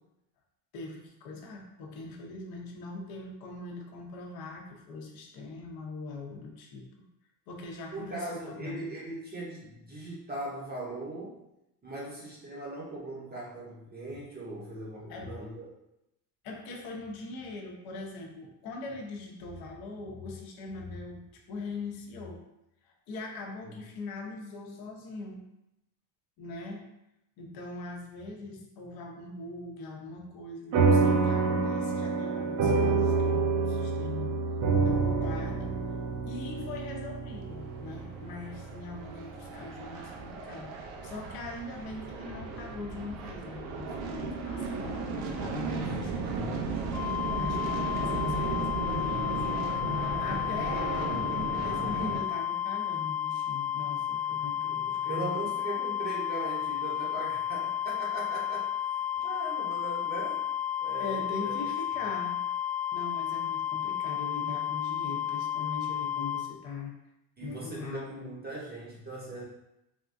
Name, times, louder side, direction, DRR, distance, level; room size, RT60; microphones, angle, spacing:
voice 1, 0.7-6.9 7.5-8.9 15.0-15.3 16.4-22.5 22.8-25.4 26.4-26.8 27.4-34.3 34.8-35.7 36.3-46.6 47.3-49.5 50.2-55.5 61.0-62.4 62.9-66.9 67.4-68.3, left 3 dB, 50° left, 1 dB, 0.8 m, -41 dB
voice 2, 7.9-11.4 11.8-15.7 45.7-46.7 55.1-58.7 59.1-60.4 60.8-61.6 67.4-69.4, right 2 dB, 20° right, -5 dB, 0.8 m, -39 dB
sound 1, 30.7-39.5, right 4 dB, 45° right, 0.5 m, -27 dB
sound 2, 37.4-52.2, right 3 dB, 85° right, 0.7 m, -35 dB
sound 3, 46.9-66.4, left 10 dB, 5° left, 1.0 m, -32 dB
3.5 x 2.2 x 2.5 m, 0.86 s
supercardioid pair, 105°, 49 cm